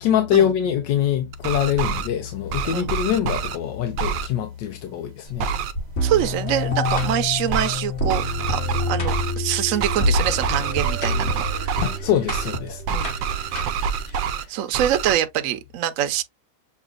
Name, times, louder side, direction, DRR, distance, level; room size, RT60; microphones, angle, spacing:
voice 1, 0.0-5.5 11.8-12.8 14.3-14.5, left 10 dB, 85° left, 1.3 m, -24 dB
sound 1, 1.3-2.1 2.5-3.6 4.0-4.3 5.4-5.7 6.8-7.2 7.5-7.8 8.1-9.4 9.8-12.0 12.3-12.6 12.9-14.5 14.7-15.1, right 7 dB, 90° right, 1.3 m, -27 dB
sound 2, 5.2-14.3, right 1 dB, 60° left, 2.7 m, -41 dB
sound 3, 6.0-14.1, left 2 dB, 40° left, 1.3 m, -27 dB
voice 2, 6.0-11.8 12.9-13.2 14.5-16.2, right 11 dB, 65° right, 0.8 m, -25 dB
6.8 x 2.4 x 2.4 m
omnidirectional pair, 1.9 m